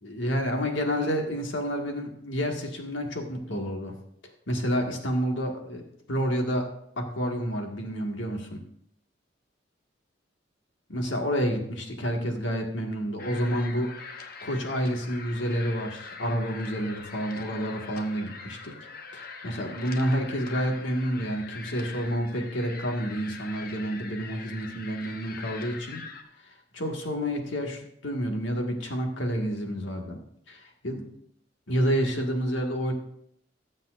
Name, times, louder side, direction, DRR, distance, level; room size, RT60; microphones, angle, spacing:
voice 1, 0.0-3.9 4.5-5.8 6.1-6.7 7.0-8.6 10.9-18.7 19.1-26.0 26.7-30.2 30.5-30.6 30.8-31.1 31.7-32.9, equal, 85° left, 2 dB, 1.9 m, -29 dB
sound 1, 13.2-26.2, left 5 dB, 55° left, 1.0 m, -43 dB
19.5 x 7.5 x 2.6 m, 0.72 s
head